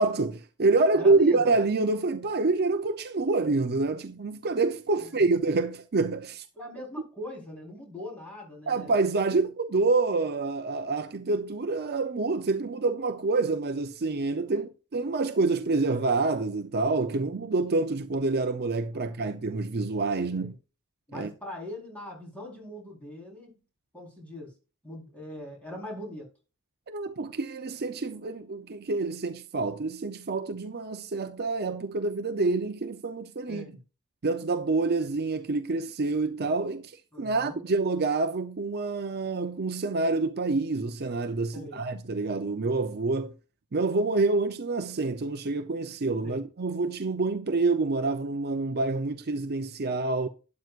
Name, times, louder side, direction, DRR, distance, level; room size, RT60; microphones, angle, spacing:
voice 1, 0.0-6.4 8.7-20.5 21.1-21.3 26.9-33.7 34.2-43.3 43.7-50.3, right 3 dB, 45° right, 0.7 m, -27 dB
voice 2, 0.9-1.4 5.0-5.1 6.6-8.9 14.5-14.7 19.1-19.2 20.3-20.5 21.1-23.6 23.9-24.5 24.8-26.3 33.5-33.8 37.1-37.6 41.5-41.8 46.2-46.4, left 1 dB, 5° left, 4.2 m, -41 dB
12.0 x 9.4 x 2.5 m
head